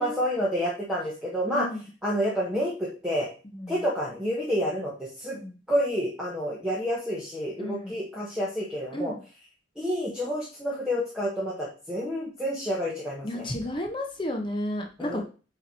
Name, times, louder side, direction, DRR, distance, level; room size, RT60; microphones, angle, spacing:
voice 1, 0.0-1.7 2.0-3.3 3.7-4.9 5.2-5.4 5.7-9.1 9.8-13.5 15.0-15.2, equal, 5° right, -5 dB, 1.2 m, -29 dB
voice 2, 1.5-1.9 3.4-3.7 5.3-5.6 7.6-8.0 8.9-9.2 13.2-15.2, left 1 dB, 25° left, 3 dB, 0.8 m, -32 dB
8.3 x 3.1 x 4.1 m, 0.36 s
head